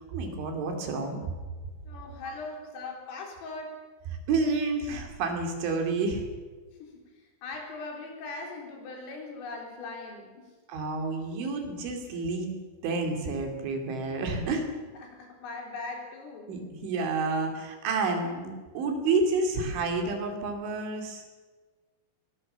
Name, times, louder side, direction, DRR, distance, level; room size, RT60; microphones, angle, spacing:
voice 1, 0.1-1.2 4.3-6.2 10.7-12.6 12.8-14.7 16.5-21.2, right 3 dB, 70° right, 4 dB, 5.0 m, -29 dB
voice 2, 1.9-3.8 6.8-7.0 7.4-10.5 15.0-16.5, left 3 dB, 85° left, 1 dB, 6.7 m, -40 dB
21.0 x 19.0 x 7.0 m, 1.3 s
omnidirectional pair, 5.7 m